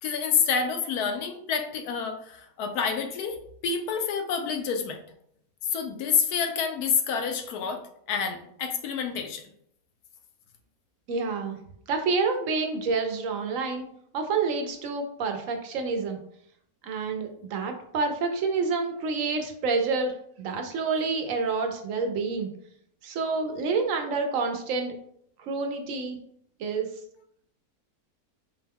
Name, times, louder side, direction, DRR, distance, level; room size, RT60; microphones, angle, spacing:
voice 1, 0.0-3.4 3.6-5.0 5.7-9.4, left 6 dB, 80° left, 5 dB, 1.1 m, -28 dB
voice 2, 11.1-11.6 11.9-13.9 14.1-16.2 16.8-22.5 23.0-24.9 25.4-26.2 26.6-26.9, right 4 dB, 70° right, 4 dB, 0.9 m, -28 dB
4.4 x 2.2 x 3.4 m, 0.70 s
omnidirectional pair, 1.6 m